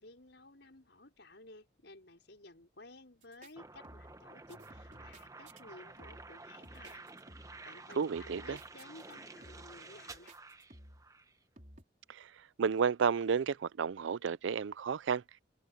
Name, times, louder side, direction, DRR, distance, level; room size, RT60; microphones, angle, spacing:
voice 1, 0.0-7.1 7.4-10.4, left 2 dB, 70° left, 5.4 m, -55 dB
sound 1, 3.2-3.5 3.8-4.2 4.5-5.6 6.0-6.4 6.6-7.7 7.9-9.1 9.4-9.8 10.3-11.1 11.6-11.8, right 1 dB, 40° right, 4.6 m, -55 dB
sound 2, 3.6-11.4, right 3 dB, 20° right, 1.0 m, -52 dB
voice 2, 8.0-8.6 12.1-12.3 12.6-15.2, right 6 dB, 85° right, 0.4 m, -32 dB
head